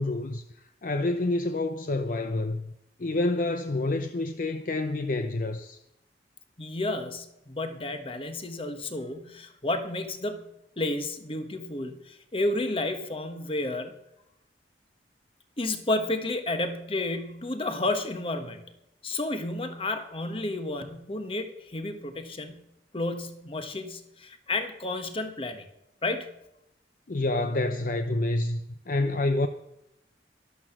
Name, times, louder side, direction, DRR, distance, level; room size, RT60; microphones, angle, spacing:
voice 1, 0.0-2.7 3.0-5.8 27.1-29.5, left 2 dB, 50° left, 0.6 m, -28 dB
voice 2, 6.6-10.5 10.8-14.0 15.6-18.7 19.0-22.6 22.9-25.6 26.0-26.3, left 2 dB, 30° left, 1.3 m, -31 dB
12.5 x 12.0 x 6.1 m
head